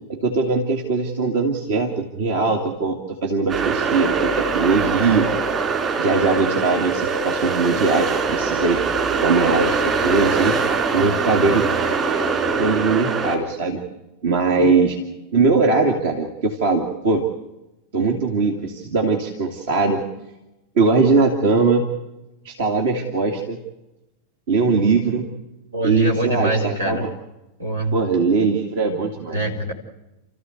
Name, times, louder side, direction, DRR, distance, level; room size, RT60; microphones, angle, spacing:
voice 1, 0.1-5.3 6.0-8.8 9.2-10.6 10.9-11.7 12.6-13.8 14.2-15.0 15.3-17.3 17.9-20.0 20.8-21.9 22.4-23.6 24.5-25.3 25.8-27.1 27.9-29.4, right 4 dB, 55° right, 3 dB, 2.3 m, -20 dB
sound 1, 3.5-13.3, right 4 dB, 25° right, 4.3 m, -22 dB
voice 2, 25.7-27.0 27.6-28.0 29.3-29.7, right 1 dB, 75° right, 3 dB, 3.9 m, -23 dB
29.5 x 14.5 x 8.0 m, 0.99 s
figure-of-eight pair, 90°, 0 cm